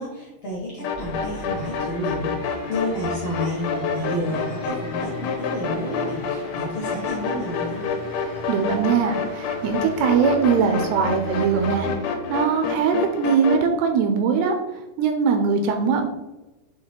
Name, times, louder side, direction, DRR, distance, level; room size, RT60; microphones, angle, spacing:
voice 1, 0.0-7.8, equal, 70° left, -5 dB, 1.5 m, -30 dB
sound 1, 0.8-13.6, left 5 dB, 90° left, 3.0 m, -29 dB
sound 2, 0.9-12.0, equal, 55° right, 0.8 m, -39 dB
voice 2, 8.5-14.5 15.0-16.1, right 6 dB, 85° right, 5 dB, 2.3 m, -21 dB
7.5 x 2.9 x 4.4 m, 1.1 s
omnidirectional pair, 5.2 m